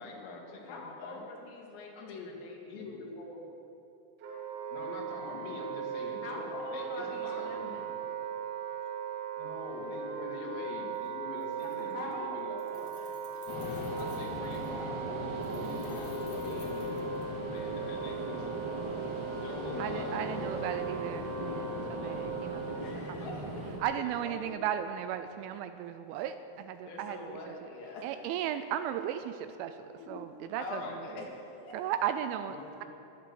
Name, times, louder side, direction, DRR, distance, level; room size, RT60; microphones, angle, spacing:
voice 1, 0.0-1.2 2.0-2.3 2.7-3.4 4.7-7.8 9.4-12.7 13.9-18.7 19.4-20.5 22.0-22.3 23.2-23.3 24.2-24.5 30.0-30.1 30.8-31.0 32.5-32.7, left 3 dB, 90° left, -1 dB, 4.8 m, -44 dB
voice 2, 0.6-2.9 6.2-7.9 11.6-12.4 12.7-13.3 16.3-16.8 17.8-18.3 22.8-23.4 26.8-28.1 30.6-31.8, left 3 dB, 65° left, -1 dB, 4.3 m, -44 dB
Wind instrument woodwind instrument, 4.2-22.8, right 5 dB, 60° right, 3.0 m, -38 dB
Keys jangling, 10.9-11.1 11.4-12.1 12.4-14.8 15.4-17.6, left 4 dB, 40° left, 2.2 m, -58 dB
sound 1, 13.5-23.8, right 1 dB, 15° right, 1.0 m, -39 dB
voice 3, 19.8-23.2 23.8-27.7 28.0-31.2 31.7-32.6, right 10 dB, 85° right, 9 dB, 2.8 m, -36 dB
14.5 x 12.5 x 6.8 m, 2.8 s
omnidirectional pair, 5.8 m